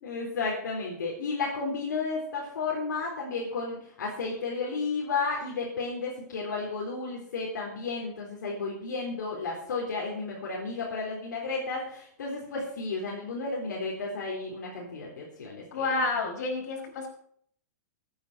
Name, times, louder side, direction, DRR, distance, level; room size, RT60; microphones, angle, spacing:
voice 1, 0.0-15.9, left 4 dB, 80° left, -3 dB, 3.9 m, -33 dB
voice 2, 15.7-17.1, left 3 dB, 65° left, 1 dB, 5.3 m, -29 dB
14.5 x 9.5 x 5.0 m, 0.64 s
hypercardioid pair, 125°, 10 cm